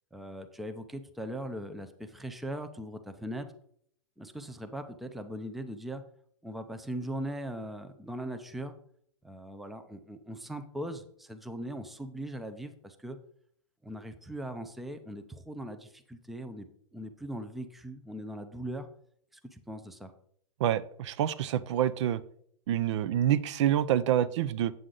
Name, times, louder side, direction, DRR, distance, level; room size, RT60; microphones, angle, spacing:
voice 1, 0.1-3.5 4.2-6.0 6.4-8.7 9.2-13.2 13.8-16.7 16.9-18.9 19.5-20.1, right 1 dB, ahead, 8 dB, 0.5 m, -40 dB
voice 2, 20.6-22.2 22.7-24.7, right 11 dB, 60° right, 15 dB, 0.5 m, -27 dB
8.0 x 7.7 x 3.8 m, 0.65 s
hypercardioid pair, 145°, 17 cm